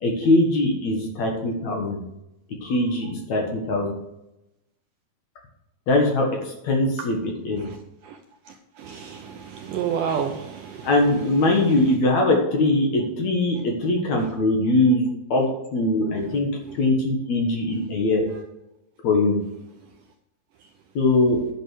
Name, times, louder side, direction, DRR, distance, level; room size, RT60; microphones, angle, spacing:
voice 1, 0.0-2.0 2.6-3.9 5.9-7.6 10.8-16.5 16.8-18.2 19.0-19.4 21.0-21.4, left 2 dB, 55° left, 1 dB, 2.4 m, -21 dB
voice 2, 8.8-10.9, right 7 dB, 75° right, 4 dB, 2.0 m, -30 dB
10.5 x 6.5 x 6.3 m, 0.90 s
omnidirectional pair, 4.5 m